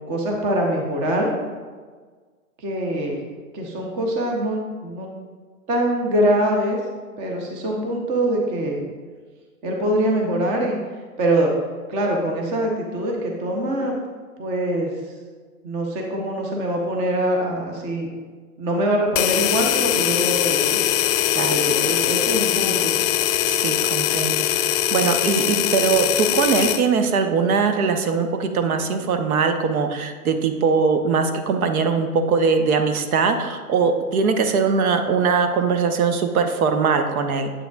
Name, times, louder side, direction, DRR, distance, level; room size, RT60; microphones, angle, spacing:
voice 1, 0.1-1.3 2.6-3.2 3.5-5.1 5.7-6.8 7.2-8.8 9.6-10.8 11.2-11.5 11.9-13.9 14.4-14.9 15.6-18.1 18.6-20.8 21.4-23.0, right 1 dB, 15° right, 1 dB, 0.4 m, -23 dB
sound 1, 19.2-26.9, left 11 dB, 65° left, 0.5 m, -21 dB
voice 2, 23.5-37.5, right 5 dB, 75° right, 7 dB, 0.8 m, -21 dB
7.4 x 6.9 x 2.3 m, 1.5 s
hypercardioid pair, 140°, 44 cm